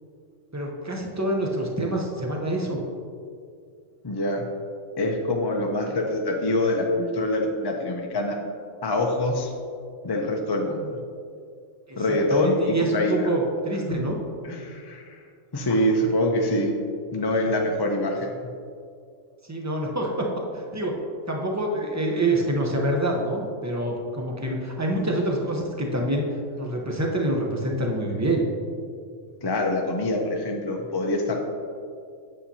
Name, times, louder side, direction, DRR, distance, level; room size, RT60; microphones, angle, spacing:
voice 1, 0.5-2.8 11.9-14.2 19.5-20.2 20.5-20.9 21.3-26.2 26.6-28.4, right 1 dB, 15° right, 0 dB, 0.7 m, -26 dB
voice 2, 4.0-4.5 5.0-8.4 8.8-9.5 10.0-11.0 12.0-13.3 13.9-14.0 14.4-15.2 15.5-16.7 17.1-18.3 29.4-31.4, left 1 dB, 30° left, 1 dB, 0.4 m, -25 dB
8.7 x 7.2 x 2.8 m, 2.3 s
omnidirectional pair, 1.3 m